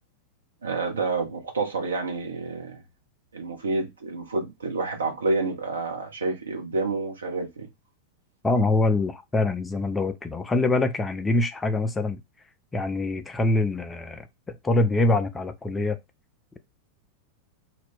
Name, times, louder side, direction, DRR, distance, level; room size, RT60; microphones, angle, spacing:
voice 1, 0.6-2.8 3.3-7.7, right 3 dB, 70° right, 0.9 m, -29 dB
voice 2, 8.4-12.2 12.7-16.0, left 2 dB, 15° left, 0.4 m, -24 dB
2.6 x 2.1 x 3.6 m
figure-of-eight pair, 90°, 0 cm